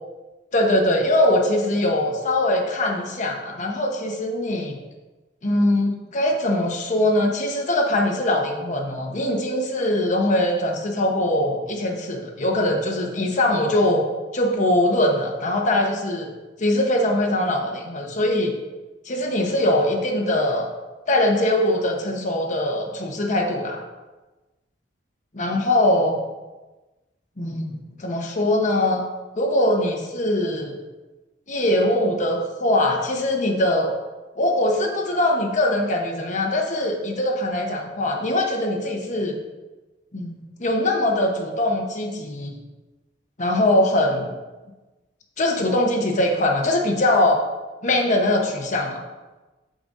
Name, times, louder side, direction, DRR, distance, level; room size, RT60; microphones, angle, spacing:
voice 1, 0.5-4.7 5.4-14.1 14.3-16.3 16.6-18.5 19.0-20.7 21.1-23.8 25.3-26.2 27.4-29.0 29.3-30.7 31.5-33.9 34.4-39.4 40.1-42.6 43.4-44.3 45.4-47.4 47.8-49.0, left 1 dB, 45° left, 1 dB, 1.1 m, -22 dB
13.5 x 5.1 x 2.7 m, 1.2 s
head